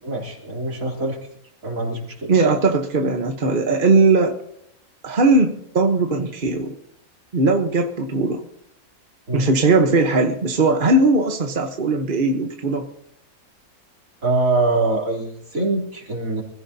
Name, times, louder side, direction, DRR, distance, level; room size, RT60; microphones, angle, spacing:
voice 1, 0.0-1.2 1.6-2.3 9.3-9.5 14.2-16.4, right 2 dB, 60° right, -1 dB, 3.7 m, -23 dB
voice 2, 2.3-4.4 5.0-6.7 7.3-8.4 9.3-12.9, right 3 dB, 40° right, 4 dB, 1.2 m, -19 dB
25.0 x 15.5 x 2.8 m, 0.72 s
omnidirectional pair, 1.6 m